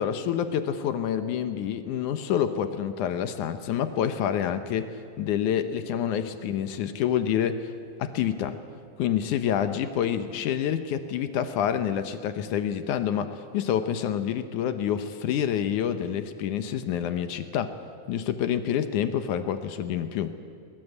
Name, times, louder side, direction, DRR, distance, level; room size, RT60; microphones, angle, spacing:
voice 1, 0.0-7.7 8.0-8.6 9.0-17.7 18.1-20.3, left 9 dB, 70° left, 10 dB, 2.1 m, -27 dB
22.5 x 20.5 x 8.0 m, 2.4 s
omnidirectional pair, 4.1 m